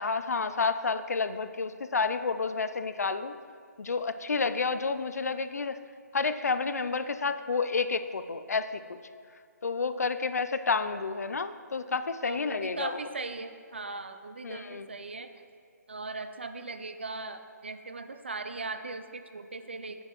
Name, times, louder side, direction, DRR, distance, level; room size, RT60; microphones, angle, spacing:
voice 1, 0.0-3.4 3.8-5.8 6.1-9.0 9.6-13.0 14.4-14.9, left 4 dB, 60° left, 11 dB, 0.4 m, -30 dB
voice 2, 12.2-15.3 15.9-20.0, right 3 dB, 40° right, 9 dB, 0.3 m, -39 dB
9.0 x 7.5 x 3.0 m, 2.3 s
hypercardioid pair, 180°, 10 cm